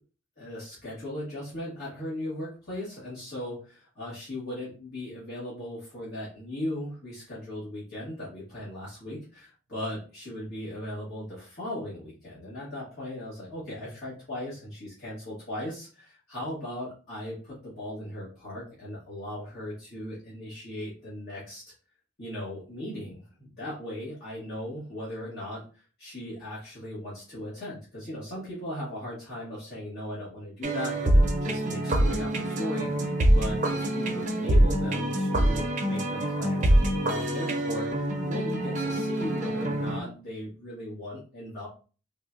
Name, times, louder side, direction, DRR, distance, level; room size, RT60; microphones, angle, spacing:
voice 1, 0.4-21.6 22.2-41.7, left 1 dB, 55° left, -10 dB, 1.4 m, -38 dB
sound 1, 30.6-40.0, right 1 dB, 40° right, 0.6 m, -25 dB
3.6 x 2.2 x 2.5 m, 0.37 s
head